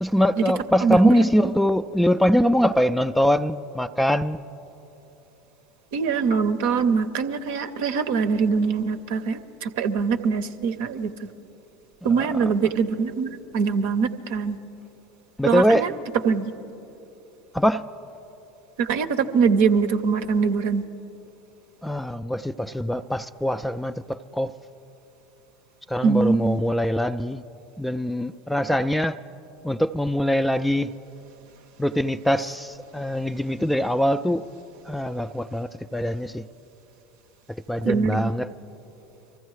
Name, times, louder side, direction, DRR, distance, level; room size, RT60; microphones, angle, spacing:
voice 1, 0.0-4.4 12.1-12.5 15.4-15.9 17.5-17.8 21.8-24.5 25.9-27.4 27.8-29.2 29.6-30.9 31.8-34.4 34.9-36.4 37.7-38.5, equal, 5° left, 0.3 m, -23 dB
voice 2, 0.8-1.5 5.9-11.3 12.0-14.6 15.5-15.9 16.2-16.5 18.8-20.8 26.0-26.6 37.8-38.3, right 5 dB, 65° right, 0.6 m, -23 dB
24.5 x 15.0 x 3.2 m
hypercardioid pair, 80°, 0 cm